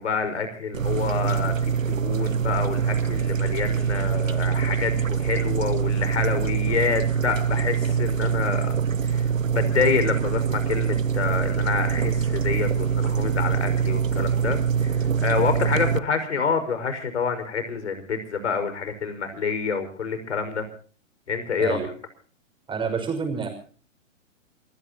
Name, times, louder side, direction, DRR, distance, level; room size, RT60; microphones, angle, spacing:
voice 1, 0.0-8.7 9.0-20.7 21.3-21.9, left 5 dB, 60° left, 9 dB, 5.6 m, -27 dB
sound 1, 0.7-16.0, right 7 dB, 75° right, 1.0 m, -24 dB
voice 2, 22.7-23.5, right 5 dB, 10° right, 4 dB, 6.0 m, -28 dB
27.5 x 17.0 x 3.0 m, 0.42 s
figure-of-eight pair, 120°, 39 cm